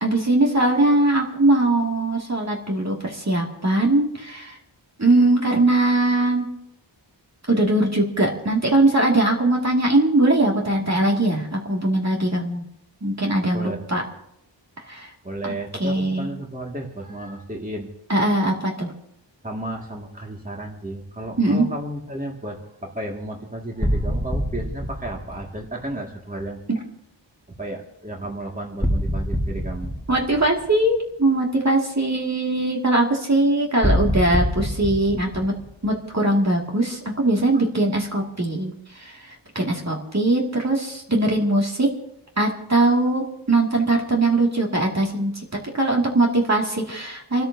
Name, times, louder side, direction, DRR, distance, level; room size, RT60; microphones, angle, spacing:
voice 1, 0.0-4.6 5.0-6.5 7.5-12.6 13.0-14.0 14.9-15.1 15.8-16.3 18.1-18.9 21.4-21.7 26.7-26.8 30.1-35.5 35.8-41.9 42.4-45.3 45.7-47.4, right 2 dB, 35° right, -1 dB, 2.4 m, -21 dB
voice 2, 13.5-13.9 15.2-17.9 19.4-26.6 27.6-29.9 38.1-38.3, right 1 dB, 20° right, -1 dB, 2.2 m, -33 dB
sound 1, 23.8-25.9 28.8-30.9 33.8-36.4, equal, ahead, 1.9 m, -25 dB
30.0 x 13.0 x 2.8 m, 0.79 s
wide cardioid pair, 85°, 44 cm